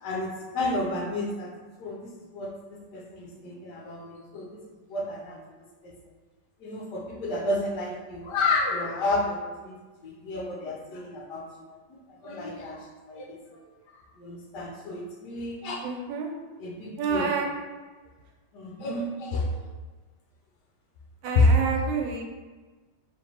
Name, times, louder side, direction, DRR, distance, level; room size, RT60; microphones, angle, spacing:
voice 1, 0.0-1.5 1.8-4.6 4.9-5.4 5.8-5.9 6.6-9.8 10.0-11.4 11.9-13.4 14.2-15.8 16.6-17.3 18.5-19.6 21.3-21.5, left 2 dB, 70° left, -2 dB, 1.2 m, -30 dB
voice 2, 15.8-16.3 17.0-17.5 21.2-22.2, right 5 dB, 80° right, 2 dB, 1.3 m, -28 dB
4.2 x 3.0 x 3.2 m, 1.3 s
omnidirectional pair, 2.1 m